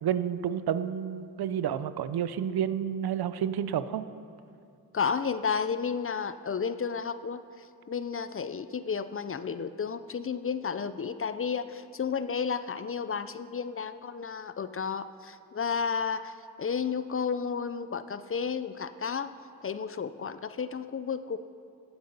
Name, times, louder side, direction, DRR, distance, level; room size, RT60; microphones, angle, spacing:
voice 1, 0.0-4.0, right 9 dB, 70° right, 13 dB, 0.6 m, -30 dB
voice 2, 4.9-19.3 19.6-21.4, left 6 dB, 35° left, 13 dB, 0.5 m, -32 dB
15.5 x 7.9 x 5.4 m, 2.5 s
cardioid pair, 65°, 39 cm